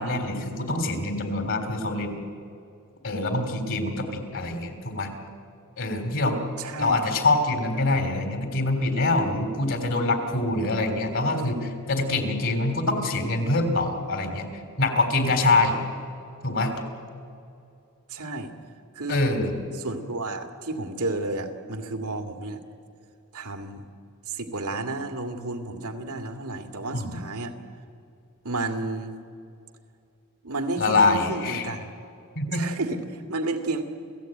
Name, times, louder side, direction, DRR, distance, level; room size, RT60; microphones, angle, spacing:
voice 1, 0.0-2.2 3.0-5.1 5.8-6.4 6.8-14.5 14.8-15.8 16.4-16.8 19.1-19.5 26.9-27.2 30.8-31.7 32.4-32.6, left 2 dB, 60° left, 6 dB, 3.6 m, -25 dB
voice 2, 6.6-7.0 18.1-18.5 19.0-19.2 19.8-22.6 23.3-23.8 24.3-27.6 28.4-29.2 30.4-31.9 32.5-33.8, right 2 dB, 90° right, 5 dB, 2.2 m, -31 dB
29.0 x 16.5 x 9.1 m, 2.5 s
head